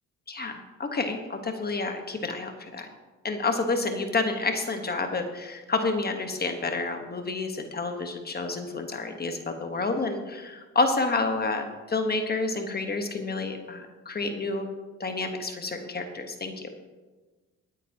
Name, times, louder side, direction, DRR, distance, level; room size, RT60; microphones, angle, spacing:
voice 1, 0.3-2.9 3.2-14.7 15.0-16.7, left 3 dB, 30° left, 5 dB, 1.2 m, -29 dB
19.0 x 9.1 x 2.8 m, 1.3 s
cardioid pair, 90°, 30 cm